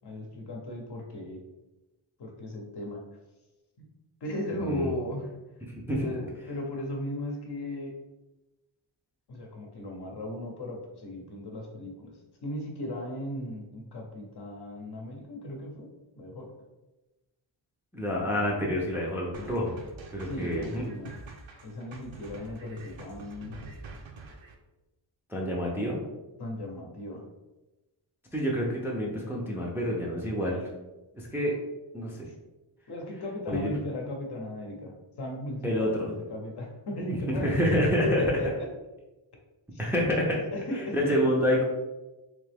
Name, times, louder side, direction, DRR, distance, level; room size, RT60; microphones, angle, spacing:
voice 1, 0.0-1.4 2.2-3.0 3.8-3.9 4.2-5.3 5.9-7.9 9.3-12.1 12.4-15.9 16.2-16.5 20.3-21.1 21.6-23.6 26.4-27.2 32.3-32.4 32.9-34.9 35.2-37.5 38.0-38.7 39.7-39.8 40.3-41.2, left 1 dB, 55° left, 1 dB, 0.8 m, -36 dB
voice 2, 4.6-4.9 5.7-6.1 17.9-19.7 20.1-20.8 25.3-26.0 28.3-30.7 31.1-31.5 31.9-32.2 33.5-33.7 35.6-36.1 37.4-38.4 39.8-40.4 40.9-41.6, equal, 5° right, -3 dB, 0.5 m, -27 dB
sound 1, 19.3-24.5, right 3 dB, 70° right, 0.6 m, -46 dB
3.4 x 2.8 x 3.3 m, 1.1 s
wide cardioid pair, 150°, 48 cm